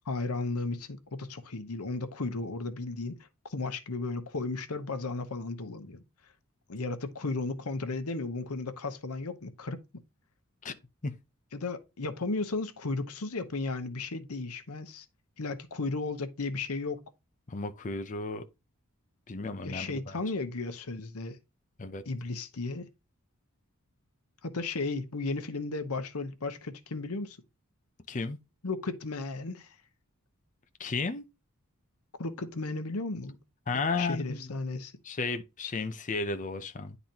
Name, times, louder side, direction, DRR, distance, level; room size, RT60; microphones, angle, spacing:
voice 1, 0.1-3.2 3.4-6.0 6.7-9.8 11.5-15.1 15.4-17.0 19.6-21.4 22.1-22.9 24.4-27.4 28.6-29.8 32.2-33.4 34.0-34.9, left 3 dB, 90° left, 0.9 m, -34 dB
voice 2, 17.5-18.5 19.3-20.2 21.8-22.0 28.1-28.4 30.8-31.2 33.7-34.5 35.0-37.0, left 3 dB, 35° left, 0.6 m, -33 dB
10.5 x 4.0 x 2.9 m
head